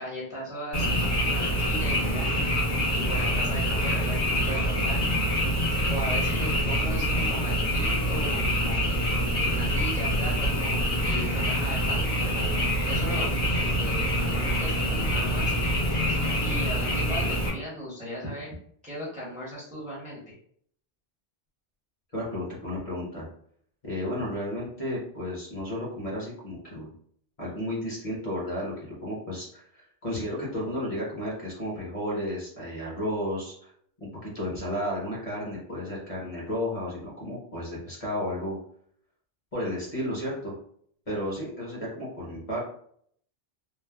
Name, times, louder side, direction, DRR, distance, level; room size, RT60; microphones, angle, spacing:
voice 1, 0.0-2.4 2.9-5.0 5.9-9.3 9.5-15.5 16.1-18.6 18.8-20.3, equal, 10° right, -6 dB, 0.6 m, -38 dB
Frog, 0.7-17.5, equal, 70° left, 1.3 m, -26 dB
voice 2, 22.1-23.3 23.8-26.9 27.4-33.7 34.2-38.6 39.5-40.5 41.1-42.6, left 1 dB, 40° left, -5 dB, 0.8 m, -33 dB
3.2 x 2.0 x 2.2 m, 0.64 s
omnidirectional pair, 1.1 m